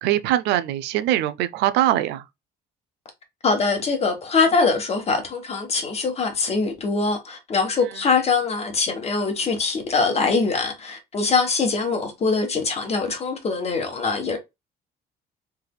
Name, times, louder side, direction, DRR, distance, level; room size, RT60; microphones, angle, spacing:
voice 1, 0.0-2.2, right 13 dB, 90° right, 0.5 m, -22 dB
voice 2, 3.4-14.4, left 4 dB, 40° left, 1.4 m, -23 dB
3.4 x 3.3 x 2.3 m
cardioid pair, 110°, 17 cm